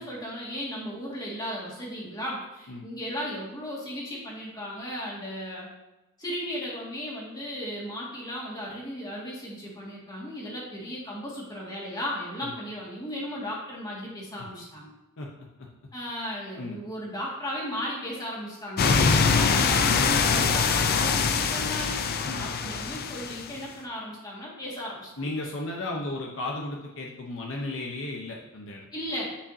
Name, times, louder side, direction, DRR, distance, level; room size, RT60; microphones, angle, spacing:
voice 1, 0.0-5.7 6.2-14.9 15.9-22.0 22.4-25.3 28.9-29.3, equal, 20° left, -4 dB, 2.0 m, -35 dB
sound 1, 18.8-23.6, left 5 dB, 45° left, 0.4 m, -23 dB
voice 2, 25.2-28.9, left 2 dB, 60° left, -1 dB, 0.8 m, -34 dB
10.0 x 5.0 x 2.8 m, 1.0 s
head